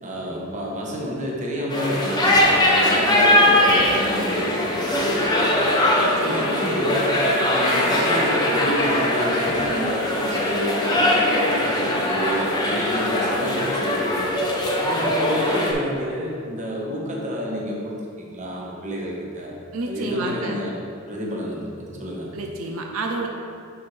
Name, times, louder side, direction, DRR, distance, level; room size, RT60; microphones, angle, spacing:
voice 1, 0.0-5.6 6.3-7.1 7.5-14.4 14.8-19.5 19.8-20.7 21.1-22.3, equal, 35° right, -3 dB, 1.2 m, -29 dB
sound 1, 1.7-15.7, left 1 dB, 20° left, 0.8 m, -21 dB
voice 2, 6.0-6.6 19.7-20.6 22.3-23.3, right 2 dB, 85° right, 1 dB, 0.6 m, -29 dB
10.0 x 4.4 x 3.3 m, 2.3 s
head